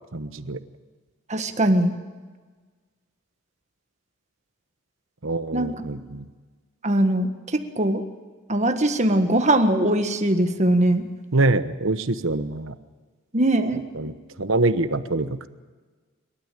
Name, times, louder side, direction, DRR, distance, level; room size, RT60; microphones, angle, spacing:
voice 1, 0.1-0.6 5.2-6.3 11.3-12.7 13.9-15.5, right 2 dB, 60° right, 12 dB, 1.1 m, -25 dB
voice 2, 1.3-1.9 5.5-5.7 6.8-8.0 8.5-11.1 13.3-13.8, right 1 dB, 30° right, 7 dB, 1.6 m, -21 dB
26.5 x 13.0 x 9.2 m, 1.4 s
head